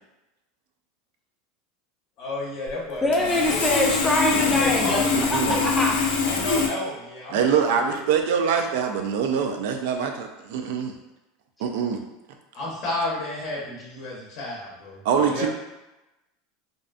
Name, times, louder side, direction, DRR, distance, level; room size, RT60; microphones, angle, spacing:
voice 1, 2.2-3.6 4.3-5.6 6.2-8.0 12.5-15.5, left 1 dB, 40° left, -4 dB, 0.6 m, -32 dB
Sawing, 2.7-2.8 3.1-6.7, left 5 dB, 85° left, 0.4 m, -24 dB
voice 2, 3.0-6.2, left 1 dB, 5° left, -1 dB, 0.4 m, -24 dB
voice 3, 5.1-5.6 7.3-10.9 11.6-12.0 15.0-15.5, right 7 dB, 70° right, 5 dB, 0.3 m, -24 dB
2.6 x 2.1 x 2.4 m, 0.99 s
supercardioid pair, 150°, 0 cm